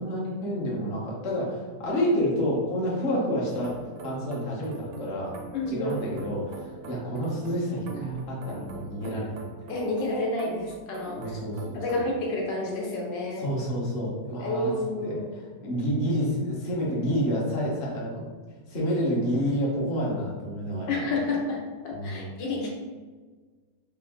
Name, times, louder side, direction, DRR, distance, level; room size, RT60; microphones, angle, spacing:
voice 1, 0.0-3.7 4.0-5.4 5.7-9.4 11.2-12.0 13.4-14.7 15.0-15.2 15.6-18.3 18.7-21.0 21.9-22.3, equal, 45° left, -5 dB, 1.0 m, -29 dB
sound 1, 3.5-12.2, right 4 dB, 80° right, 1.2 m, -43 dB
voice 2, 5.5-6.0 9.7-11.4 11.7-13.4 14.4-15.3 20.9-22.7, left 2 dB, 90° left, -1 dB, 1.5 m, -30 dB
3.5 x 2.5 x 3.6 m, 1.4 s
omnidirectional pair, 1.9 m